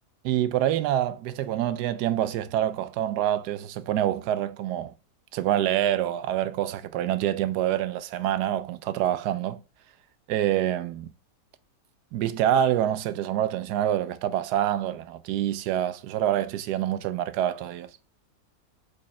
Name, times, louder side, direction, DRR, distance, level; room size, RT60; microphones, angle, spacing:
voice 1, 0.2-4.9 5.3-9.6 10.3-11.1 12.1-17.9, right 11 dB, 85° right, 1.2 m, -26 dB
5.3 x 5.0 x 4.1 m
omnidirectional pair, 1.7 m